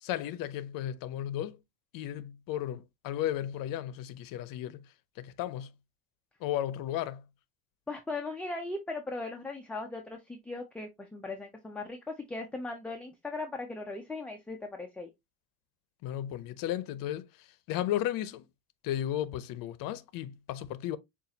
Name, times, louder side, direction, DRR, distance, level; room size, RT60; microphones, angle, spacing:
voice 1, 0.0-1.6 1.9-4.8 5.2-5.7 6.4-7.2 16.0-17.2 17.7-18.4 18.8-21.0, left 12 dB, 50° left, 0.6 m, -34 dB
voice 2, 7.9-15.1, left 3 dB, 5° left, 0.3 m, -38 dB
6.8 x 2.5 x 2.7 m
supercardioid pair, 110°, 44 cm